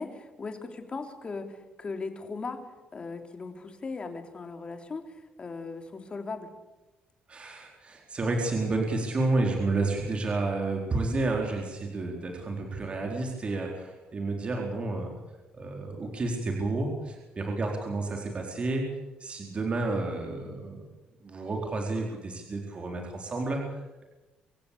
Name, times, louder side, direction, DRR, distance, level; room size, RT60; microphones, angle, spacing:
voice 1, 0.0-2.6 2.9-6.5, left 4 dB, 30° left, 6 dB, 3.3 m, -38 dB
voice 2, 7.3-15.1 15.5-18.9 19.2-20.8 21.2-24.0, right 2 dB, 35° right, 1 dB, 4.1 m, -30 dB
25.0 x 15.5 x 8.6 m, 1.1 s
cardioid pair, 100°, 3 cm